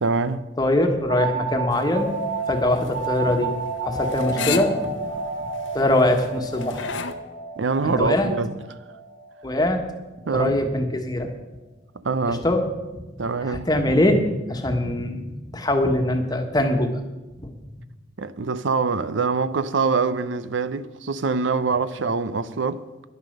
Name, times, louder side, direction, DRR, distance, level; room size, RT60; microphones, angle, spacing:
voice 1, 0.0-0.4 7.6-8.6 10.3-10.6 12.0-12.5 13.2-13.7 18.2-22.8, right 4 dB, 85° right, 0.7 m, -24 dB
voice 2, 0.6-2.1 2.5-3.5 3.8-5.1 5.7-6.9 7.8-8.3 9.4-9.8 10.3-11.3 12.3-12.6 12.9-13.0 13.4-17.0 17.4-17.5, left 1 dB, 20° left, 1.4 m, -22 dB
sound 1, 1.1-10.5, right 3 dB, 55° right, 3.1 m, -31 dB
sound 2, 1.7-7.1, left 5 dB, 85° left, 0.9 m, -33 dB
11.0 x 11.0 x 6.5 m
head